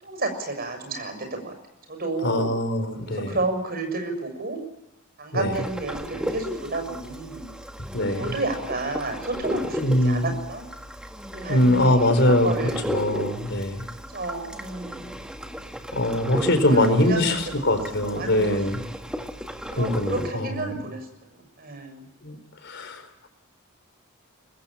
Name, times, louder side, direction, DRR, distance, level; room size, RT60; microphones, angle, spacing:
voice 1, 0.0-1.5 1.9-2.6 3.1-4.6 5.2-7.5 8.2-9.8 10.0-10.6 11.3-11.9 12.2-12.9 14.1-15.2 16.6-17.8 18.2-18.6 19.7-21.1 21.3-22.1, right 2 dB, 45° right, 5 dB, 6.9 m, -31 dB
voice 2, 2.2-3.4 5.3-5.5 7.9-8.3 9.8-10.3 11.5-12.5 12.9-13.9 15.9-18.8 19.7-20.8 22.2-23.3, left 1 dB, 55° left, 8 dB, 4.4 m, -22 dB
sound 1, 5.5-20.3, equal, 5° right, 1.7 m, -35 dB
25.0 x 21.0 x 8.9 m, 0.95 s
head